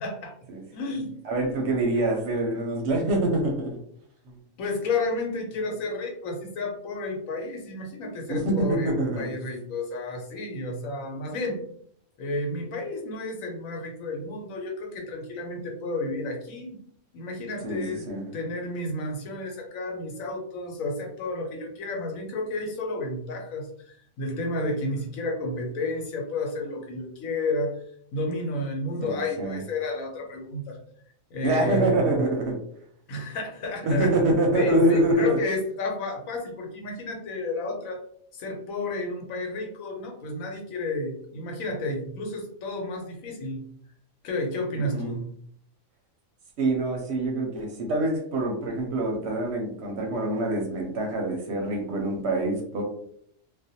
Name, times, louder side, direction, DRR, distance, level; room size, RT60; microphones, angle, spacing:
voice 1, 0.0-0.3 0.7-1.2 4.6-11.6 12.2-16.8 17.1-27.8 28.1-30.8 31.3-32.2 33.1-38.0 38.3-43.6 44.2-45.2, left 2 dB, 85° left, 2 dB, 1.1 m, -31 dB
voice 2, 1.2-3.8 8.3-9.3 17.6-18.3 29.0-29.6 31.4-32.6 33.8-35.4 44.8-45.2 46.6-52.8, right 1 dB, 65° right, 1 dB, 0.8 m, -25 dB
2.4 x 2.1 x 2.7 m, 0.65 s
omnidirectional pair, 1.4 m